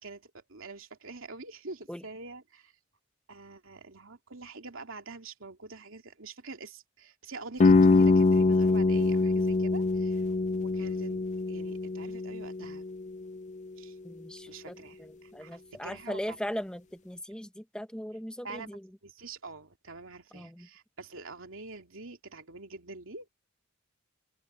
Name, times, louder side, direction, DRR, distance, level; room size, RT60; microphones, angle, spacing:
voice 1, 0.0-2.7 3.3-10.2 10.5-12.8 13.8-14.0 14.5-16.4 18.4-18.7 19.0-23.3, right 3 dB, 85° right, 2.6 m, -45 dB
sound 1, 7.6-13.4, left 3 dB, 35° left, 0.4 m, -24 dB
voice 2, 14.0-18.9 20.3-20.7, equal, 5° left, 1.2 m, -39 dB
open air
head